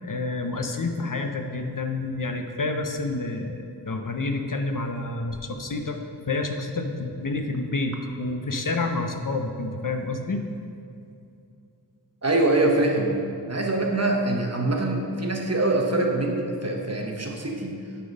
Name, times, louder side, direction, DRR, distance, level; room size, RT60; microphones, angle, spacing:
voice 1, 0.0-6.0 6.3-10.4, left 3 dB, 50° left, 5 dB, 0.6 m, -29 dB
voice 2, 12.2-13.2 13.5-17.7, right 2 dB, 40° right, 1 dB, 1.0 m, -24 dB
9.4 x 3.9 x 5.2 m, 2.5 s
wide cardioid pair, 50°, 40 cm